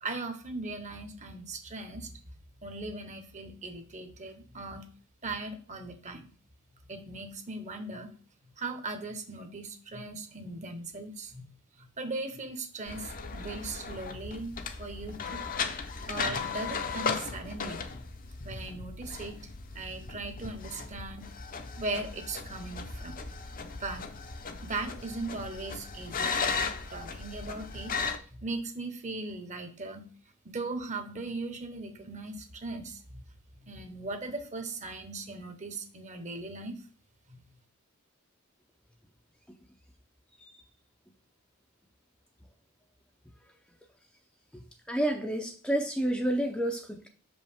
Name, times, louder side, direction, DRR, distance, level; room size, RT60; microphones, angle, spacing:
voice 1, 0.0-2.1 2.6-4.9 5.2-6.3 6.9-8.1 8.6-11.5 11.8-15.4 16.1-18.0 18.4-19.4 19.7-21.3 21.8-23.1 23.8-24.1 24.6-26.3 26.9-28.0 28.4-30.1 30.4-33.0 33.6-36.8 37.3-37.4, right 2 dB, 35° right, 1.1 m, -38 dB
sound 1, 12.9-28.2, left 5 dB, 40° left, 0.7 m, -36 dB
voice 2, 44.5-47.1, right 1 dB, 5° left, 0.6 m, -30 dB
6.2 x 5.3 x 3.5 m
head